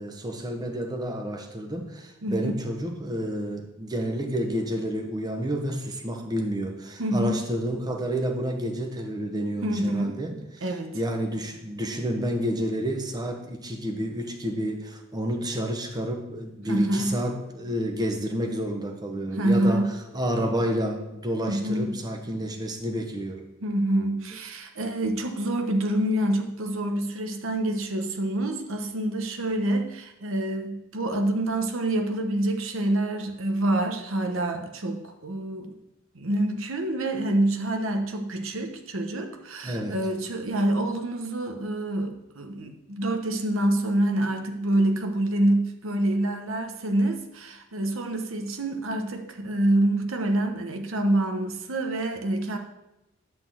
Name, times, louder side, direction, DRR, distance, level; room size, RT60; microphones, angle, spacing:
voice 1, 0.0-10.6 10.9-19.8 20.1-23.5 24.3-24.4 39.6-40.0, equal, 20° right, 3 dB, 1.0 m, -30 dB
voice 2, 2.2-2.5 7.0-7.4 9.6-10.2 10.6-11.0 16.7-17.2 19.3-20.0 21.5-22.0 23.6-35.7 36.1-52.6, right 1 dB, 70° right, 5 dB, 1.0 m, -26 dB
10.5 x 3.9 x 7.5 m, 0.90 s
head